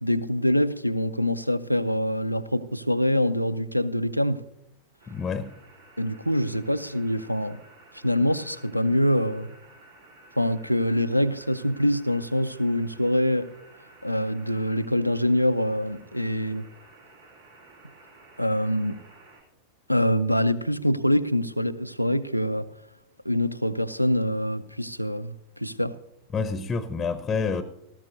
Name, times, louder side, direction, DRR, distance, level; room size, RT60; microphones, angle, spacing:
voice 1, 0.0-4.4 6.0-7.6 7.9-9.5 10.4-13.5 14.0-16.6 18.4-19.0 19.9-22.7 23.2-26.0, left 1 dB, 90° left, 0.6 m, -25 dB
sound 1, 5.0-19.4, right 2 dB, 70° right, 3.1 m, -53 dB
voice 2, 5.1-5.5 26.3-27.6, left 5 dB, 20° left, 0.8 m, -28 dB
18.0 x 14.0 x 2.7 m
figure-of-eight pair, 90°, 0 cm